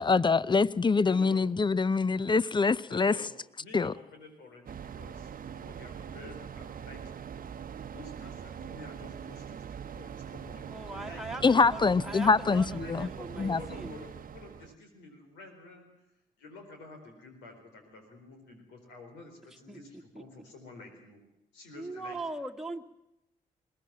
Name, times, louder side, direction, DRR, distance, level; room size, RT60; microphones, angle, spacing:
voice 1, 0.0-3.2 3.7-3.9 11.4-13.1 13.4-13.6, left 4 dB, 25° left, 0.7 m, -24 dB
voice 2, 1.1-1.4 2.9-3.3 3.6-7.0 7.9-10.7 11.0-11.2 12.4-15.9 16.4-21.2 21.5-22.2, left 3 dB, 80° left, 4.6 m, -50 dB
sound 1, 4.7-14.8, right 8 dB, 50° right, 0.9 m, -42 dB
voice 3, 10.7-14.0 19.7-19.8 20.1-20.2 21.8-22.8, right 2 dB, ahead, 2.0 m, -40 dB
21.0 x 18.0 x 7.5 m
hypercardioid pair, 40°, 18 cm